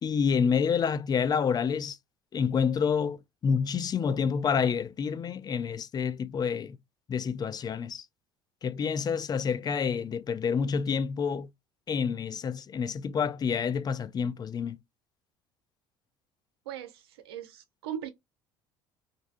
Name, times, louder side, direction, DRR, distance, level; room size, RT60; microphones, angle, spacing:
voice 1, 0.0-2.0 2.3-3.2 3.4-6.8 7.1-8.0 8.6-11.5 11.9-14.8, left 6 dB, 35° left, 0.4 m, -28 dB
voice 2, 16.7-18.1, right 10 dB, 90° right, 0.5 m, -39 dB
2.6 x 2.3 x 2.4 m
hypercardioid pair, 70°, 13 cm